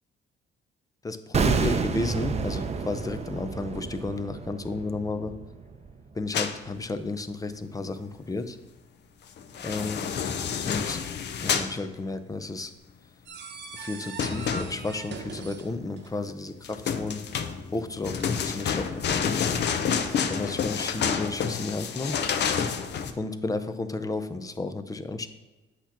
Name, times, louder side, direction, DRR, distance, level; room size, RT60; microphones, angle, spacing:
voice 1, 1.0-5.3 6.2-8.6 9.6-10.0 10.7-11.0 11.4-12.7 13.7-17.2 17.7-19.6 20.3-22.2 23.1-25.3, left 3 dB, 15° left, 9 dB, 0.5 m, -32 dB
sound 1, 1.3-6.4 6.6-6.8, right 5 dB, 35° right, 0.5 m, -29 dB
sound 2, 6.3-6.6 9.4-11.7 14.2-15.1 16.6-23.1, left 7 dB, 60° left, 0.6 m, -29 dB
sound 3, 13.3-16.3 17.9-19.2 20.1-20.5, right 5 dB, 60° right, 0.9 m, -43 dB
8.0 x 2.9 x 5.8 m, 1.2 s
cardioid pair, 90°, 20 cm